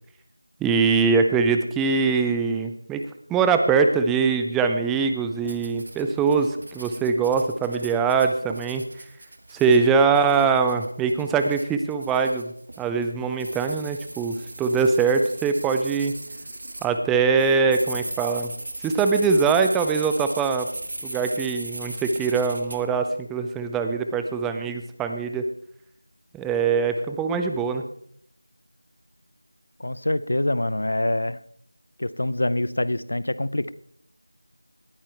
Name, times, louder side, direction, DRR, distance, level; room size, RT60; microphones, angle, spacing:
voice 1, 0.6-8.8 9.5-16.1 16.8-18.5 18.8-20.7 21.0-25.4 26.3-27.8, right 5 dB, 5° right, 6 dB, 0.4 m, -22 dB
sound 1, 5.5-16.9 17.4-22.8, right 2 dB, 45° right, 1.5 m, -38 dB
voice 2, 29.8-31.4 32.0-33.7, left 1 dB, 55° left, 17 dB, 0.6 m, -25 dB
19.0 x 8.8 x 3.4 m, 0.67 s
figure-of-eight pair, 170°, 0 cm